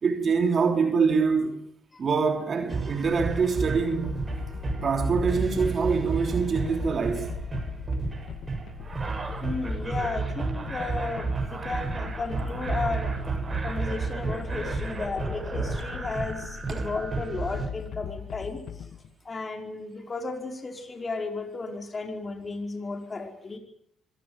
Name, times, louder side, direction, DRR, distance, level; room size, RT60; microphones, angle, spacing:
voice 1, 0.0-1.6 2.0-4.3 4.8-7.4 16.7-16.8, right 5 dB, 45° right, 3.3 m, -25 dB
sound 1, 2.7-17.7, right 4 dB, 30° right, 7.8 m, -32 dB
sound 2, 3.2-19.1, left 9 dB, 70° left, 1.4 m, -40 dB
voice 2, 9.4-13.1 13.6-18.9 19.2-23.6, left 3 dB, 35° left, 4.7 m, -34 dB
25.0 x 17.5 x 9.5 m
supercardioid pair, 65°, 0 cm